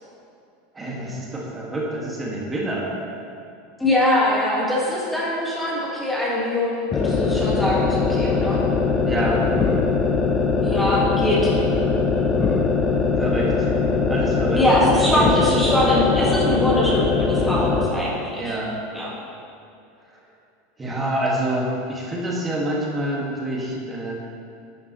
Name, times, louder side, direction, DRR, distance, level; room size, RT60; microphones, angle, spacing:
voice 1, 0.7-2.9 9.1-9.4 10.7-11.1 13.2-13.7 14.1-14.6 15.1-15.3 18.4-18.8 20.8-24.1, right 1 dB, 15° right, -4 dB, 1.9 m, -27 dB
voice 2, 3.8-8.6 10.6-11.5 14.6-18.6 18.9-19.1, left 1 dB, 5° left, -6 dB, 1.7 m, -22 dB
sound 1, 6.9-18.0, left 4 dB, 20° left, 0.7 m, -21 dB
11.5 x 7.4 x 3.1 m, 2.5 s
supercardioid pair, 130°, 0 cm